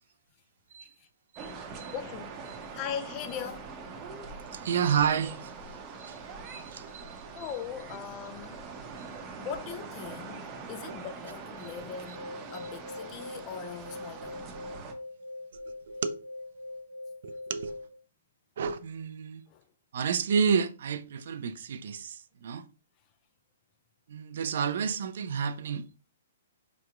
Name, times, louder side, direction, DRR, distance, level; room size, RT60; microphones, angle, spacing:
sound 1, 1.4-14.9, right 5 dB, 30° right, 0.7 m, -43 dB
voice 1, 1.9-3.7 4.7-4.8 7.3-8.7 9.4-14.4 19.5-19.6, left 8 dB, 30° left, 0.3 m, -40 dB
voice 2, 4.5-5.5 6.0-6.2 6.5-7.1 7.3-7.4 15.9-16.2 17.2-17.8 18.6-19.4 19.9-22.7 24.1-25.8, right 7 dB, 60° right, 0.4 m, -30 dB
sound 2, 12.0-18.0, left 2 dB, 85° left, 0.7 m, -43 dB
3.4 x 2.9 x 2.3 m
hypercardioid pair, 130°, 0 cm